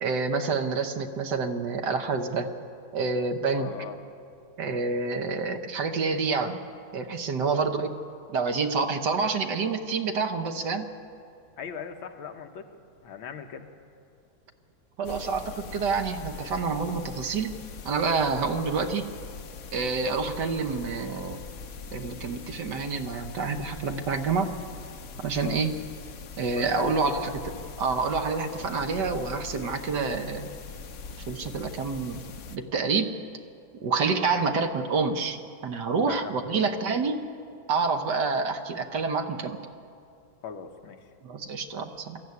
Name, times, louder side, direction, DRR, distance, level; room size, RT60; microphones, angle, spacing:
voice 1, 0.0-2.5 2.9-3.7 4.6-6.6 6.9-7.9 8.3-10.9 15.0-17.5 17.8-19.0 19.7-21.4 21.9-24.5 25.2-25.7 26.4-27.5 27.8-30.5 31.3-32.2 32.5-33.2 33.8-35.4 35.6-37.2 37.7-39.6 41.2-42.2, right 4 dB, 60° right, 7 dB, 1.6 m, -28 dB
voice 2, 3.6-4.0 7.4-7.6 11.6-12.7 13.0-13.7 18.4-18.6 25.4-25.7 26.6-27.7 28.6-28.7 34.4-34.5 36.0-36.7 40.4-41.1, left 7 dB, 85° left, 5 dB, 2.0 m, -40 dB
sound 1, 15.0-32.6, left 5 dB, 55° left, 0.9 m, -42 dB
21.0 x 14.0 x 9.6 m, 2.5 s
omnidirectional pair, 2.1 m